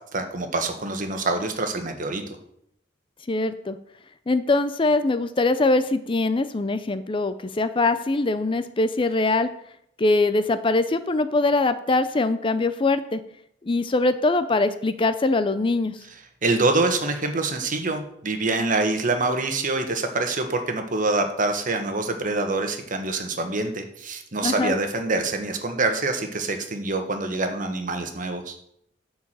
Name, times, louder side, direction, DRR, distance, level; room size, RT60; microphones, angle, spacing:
voice 1, 0.1-2.2 16.4-28.6, right 3 dB, 45° right, 6 dB, 1.4 m, -25 dB
voice 2, 3.3-3.8 4.3-9.5 10.0-13.2 13.6-16.0 24.4-24.7, left 2 dB, 30° left, 12 dB, 0.5 m, -22 dB
10.5 x 4.8 x 7.5 m, 0.72 s
head